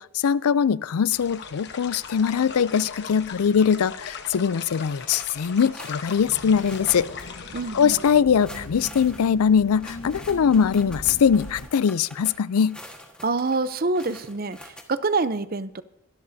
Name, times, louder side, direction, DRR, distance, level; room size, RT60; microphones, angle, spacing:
voice 1, 0.0-7.1 7.7-12.8, left 7 dB, 85° left, 19 dB, 0.4 m, -21 dB
sound 1, 1.1-8.1, left 6 dB, 50° left, 1.1 m, -39 dB
sound 2, 5.1-7.3 7.6-7.7 8.2-14.8, left 1 dB, 5° left, 1.5 m, -45 dB
sound 3, 6.2-11.7, left 1 dB, 70° left, 1.1 m, -40 dB
voice 2, 7.5-7.9 13.2-15.8, right 3 dB, 40° right, 14 dB, 0.6 m, -26 dB
24.0 x 12.0 x 2.7 m, 0.83 s
head